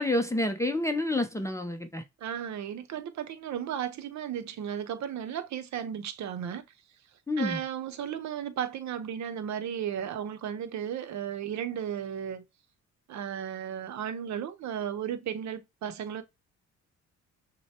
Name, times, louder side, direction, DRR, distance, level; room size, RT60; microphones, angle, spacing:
voice 1, 0.0-2.0 7.3-7.6, left 2 dB, 10° left, 0.5 m, -28 dB
voice 2, 2.2-6.6 7.4-12.4 13.1-16.2, right 9 dB, 65° right, 0.7 m, -34 dB
6.3 x 2.1 x 2.8 m
cardioid pair, 90°, 30 cm